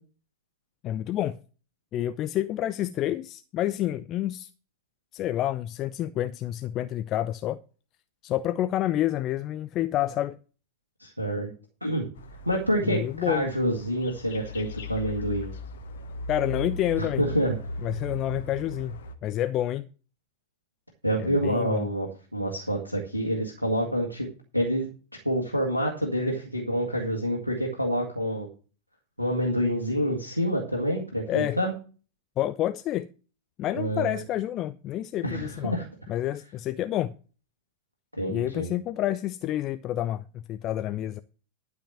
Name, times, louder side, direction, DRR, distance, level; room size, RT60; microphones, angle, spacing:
voice 1, 0.8-1.4 1.9-4.5 5.1-7.6 8.2-10.4 12.8-13.5 16.3-17.2 17.8-19.9 21.2-21.9 31.3-31.6 32.4-33.1 33.6-35.8 36.1-37.1 38.3-41.2, left 13 dB, 35° left, 0.5 m, -29 dB
voice 2, 11.0-11.5 11.8-12.1 12.5-15.5 17.0-17.6 21.0-24.3 24.5-24.9 25.2-28.5 29.2-31.7 33.7-34.2 35.2-35.8 38.2-38.7, equal, 90° right, 2.0 m, -27 dB
sound 1, 12.2-19.2, left 2 dB, 60° left, 1.3 m, -38 dB
12.0 x 5.0 x 7.7 m
figure-of-eight pair, 90°, 0 cm